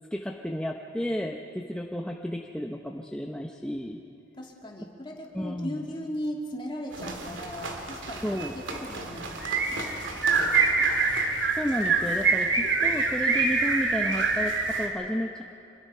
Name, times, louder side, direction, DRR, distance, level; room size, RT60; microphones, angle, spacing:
voice 1, 0.1-4.0 5.3-5.9 8.2-8.6 11.6-15.4, equal, 5° left, 1 dB, 0.7 m, -32 dB
voice 2, 4.4-10.5 10.8-10.9, equal, 25° left, 0 dB, 2.5 m, -38 dB
sound 1, 6.9-14.9, right 4 dB, 70° right, 2.6 m, -26 dB
26.0 x 21.5 x 5.6 m, 2.8 s
head